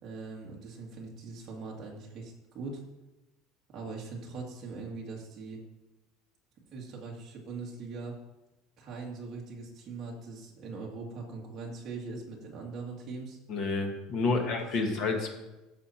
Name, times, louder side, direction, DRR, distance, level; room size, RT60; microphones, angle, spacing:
voice 1, 0.0-2.8 3.7-5.6 6.7-8.2 8.8-13.4 14.2-15.1, right 4 dB, 25° right, -2 dB, 2.2 m, -41 dB
voice 2, 13.5-15.3, left 3 dB, 40° left, 4 dB, 1.5 m, -29 dB
13.0 x 7.6 x 4.4 m, 1.0 s
cardioid pair, 180°, 0 cm